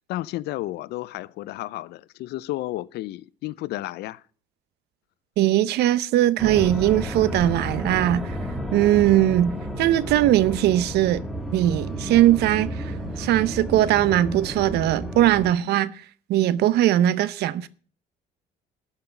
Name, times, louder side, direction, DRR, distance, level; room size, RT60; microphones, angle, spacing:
voice 1, 0.0-4.2, left 16 dB, 75° left, 0.5 m, -32 dB
voice 2, 5.4-8.3 8.7-11.2 11.5-12.9 13.2-15.9 16.3-17.7, right 13 dB, 75° right, 0.7 m, -20 dB
sound 1, 6.4-15.5, equal, ahead, 2.0 m, -32 dB
13.0 x 5.7 x 7.9 m
cardioid pair, 110°, 17 cm